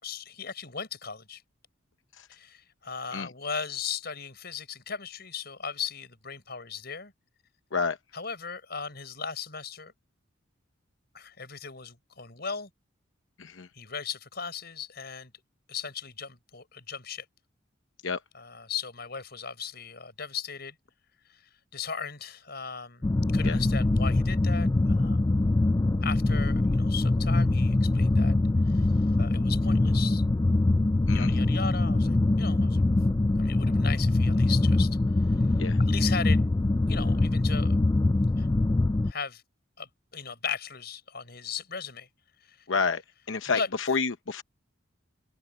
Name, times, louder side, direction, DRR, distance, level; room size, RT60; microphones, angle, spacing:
voice 1, 0.0-1.4 2.3-7.1 8.1-9.9 11.1-12.7 13.7-15.3 15.7-17.2 18.3-20.7 21.3-25.2 26.0-28.3 28.7-28.9 29.2-30.2 31.1-32.8 33.4-35.0 35.3-35.4 35.8-36.4 36.9-37.8 38.4-38.5 39.0-39.4 39.8-42.1 42.4-42.7 43.5-43.7, left 6 dB, 55° left, 6.0 m, -37 dB
voice 2, 13.4-13.7 18.0-18.2 23.4-23.6 31.1-31.4 35.6-35.8 42.7-43.0 43.3-44.4, left 5 dB, 80° left, 0.9 m, -29 dB
sound 1, 23.0-39.1, left 2 dB, 20° left, 0.3 m, -23 dB
open air
head